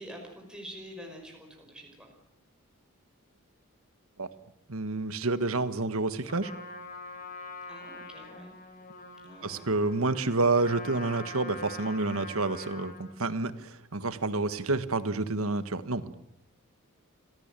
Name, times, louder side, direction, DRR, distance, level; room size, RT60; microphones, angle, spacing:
voice 1, 0.0-2.1 7.7-8.5 9.2-9.7, equal, 5° right, 1 dB, 5.3 m, -46 dB
voice 2, 4.7-6.5 9.4-16.1, right 3 dB, 70° right, 13 dB, 1.5 m, -29 dB
Trumpet, 6.2-13.1, left 2 dB, 40° left, 5.1 m, -44 dB
28.0 x 17.5 x 9.0 m, 0.84 s
head